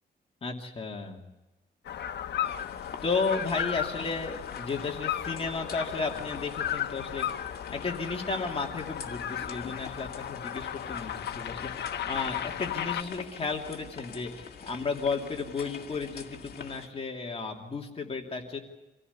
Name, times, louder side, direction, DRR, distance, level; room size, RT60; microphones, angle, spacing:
voice 1, 0.4-1.2 3.0-7.3 7.7-18.6, left 4 dB, 35° left, 1 dB, 2.7 m, -33 dB
sound 1, 1.8-13.0, left 9 dB, 80° left, 1.1 m, -35 dB
sound 2, 2.4-16.9, left 6 dB, 60° left, 2.1 m, -46 dB
26.0 x 15.5 x 8.3 m, 1.1 s
wide cardioid pair, 140°, 18 cm